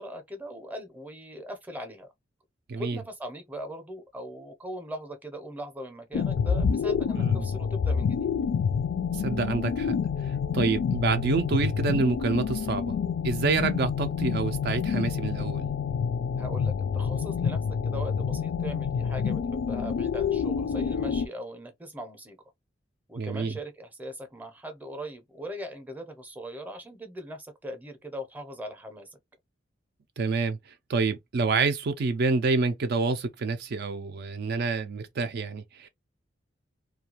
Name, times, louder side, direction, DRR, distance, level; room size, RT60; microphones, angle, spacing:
voice 1, 0.0-2.1 2.8-8.3 16.4-22.4 23.1-29.2, equal, 10° right, 0.6 m, -40 dB
sound 1, 6.1-21.3, left 6 dB, 70° left, 0.3 m, -28 dB
voice 2, 9.1-9.9 10.3-12.9 13.2-15.7 23.2-23.5 30.2-30.6 30.9-35.9, right 4 dB, 55° right, 0.4 m, -27 dB
2.3 x 2.2 x 2.9 m
head